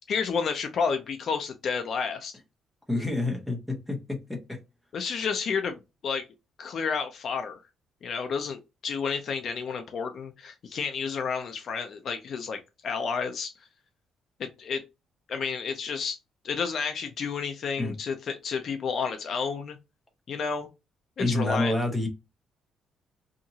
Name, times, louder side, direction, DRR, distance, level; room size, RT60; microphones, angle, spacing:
voice 1, 0.1-2.3 4.9-6.2 6.6-7.6 8.0-13.5 14.4-14.8 15.3-16.2 16.4-19.8 20.3-20.7 21.2-21.7, left 5 dB, 45° left, 0.4 m, -31 dB
voice 2, 2.9-4.4 17.8-17.9 21.2-22.1, left 2 dB, ahead, 0.7 m, -28 dB
2.8 x 2.5 x 2.7 m
cardioid pair, 170°, 0 cm